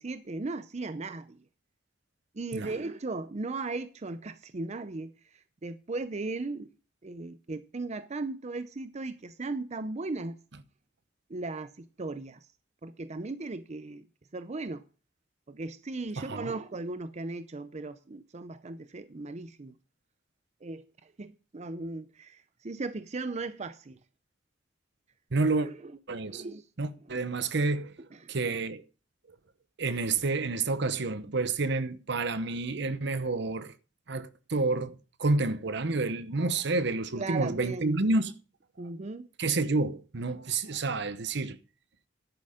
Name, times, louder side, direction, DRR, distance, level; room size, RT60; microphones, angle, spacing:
voice 1, 0.0-1.4 2.3-5.1 5.6-6.7 7.0-10.4 11.3-12.4 12.8-14.1 14.3-14.8 15.5-19.7 20.6-24.0 25.6-25.9 26.2-26.6 28.1-28.4 37.2-38.0 38.8-39.3, right 3 dB, 35° right, 0.6 m, -37 dB
voice 2, 16.2-16.5 25.3-25.7 26.1-26.4 26.8-27.9 28.3-28.8 29.8-33.7 34.1-34.9 35.2-38.3 39.4-41.6, right 3 dB, 65° right, 0.9 m, -29 dB
11.0 x 8.6 x 5.0 m
head